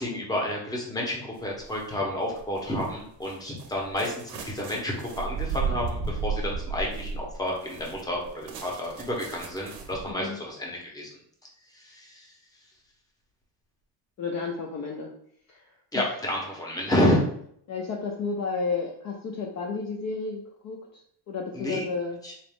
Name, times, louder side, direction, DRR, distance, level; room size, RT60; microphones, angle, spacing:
voice 1, 0.0-11.1 11.7-12.3 15.9-17.2 21.5-21.8 22.2-22.3, left 1 dB, 10° left, -2 dB, 0.8 m, -30 dB
sound 1, 1.4-1.9 2.4-10.1, right 5 dB, 55° right, 0.7 m, -34 dB
voice 2, 10.1-10.4 14.2-15.1 15.5-15.6 15.9-16.1 17.7-21.0 21.3-22.2, left 4 dB, 40° left, -1 dB, 0.5 m, -32 dB
3.9 x 2.4 x 3.5 m, 0.67 s
cardioid pair, 140°, 45 cm